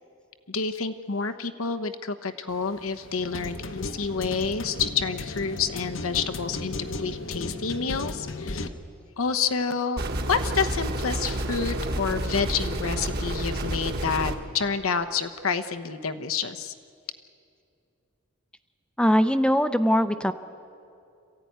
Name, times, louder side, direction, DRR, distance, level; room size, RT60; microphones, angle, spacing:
voice 1, 0.5-8.7 9.2-10.0 10.3-16.7, left 5 dB, 85° left, 9 dB, 1.0 m, -29 dB
sound 1, 2.5-8.7, left 2 dB, 65° left, 1.0 m, -35 dB
sound 2, 10.0-14.4, right 1 dB, 50° right, 1.5 m, -29 dB
voice 2, 19.0-20.3, equal, 5° left, 10 dB, 0.5 m, -21 dB
26.5 x 15.0 x 9.4 m, 2.5 s
head